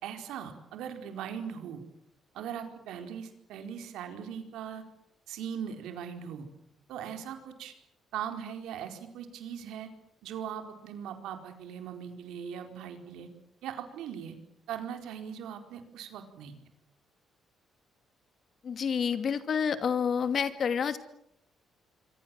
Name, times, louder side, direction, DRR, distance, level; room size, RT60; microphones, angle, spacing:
voice 1, 0.0-1.8 2.3-4.8 5.3-6.5 6.9-7.7 8.1-9.9 10.2-13.3 13.6-14.4 14.7-16.6, right 8 dB, 85° right, 6 dB, 4.4 m, -40 dB
voice 2, 18.6-21.0, left 7 dB, 55° left, 10 dB, 2.6 m, -28 dB
27.5 x 24.0 x 7.7 m, 0.77 s
cardioid pair, 90°, 0 cm